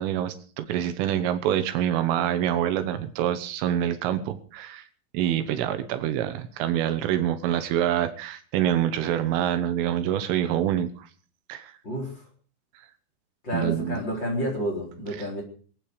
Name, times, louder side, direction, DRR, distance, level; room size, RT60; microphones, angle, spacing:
voice 1, 0.0-4.9 5.1-11.1 11.5-11.7 13.5-14.0, right 11 dB, 80° right, 9 dB, 3.7 m, -26 dB
voice 2, 13.4-15.4, equal, 25° left, -1 dB, 4.2 m, -29 dB
25.0 x 8.9 x 4.8 m, 0.43 s
omnidirectional pair, 5.8 m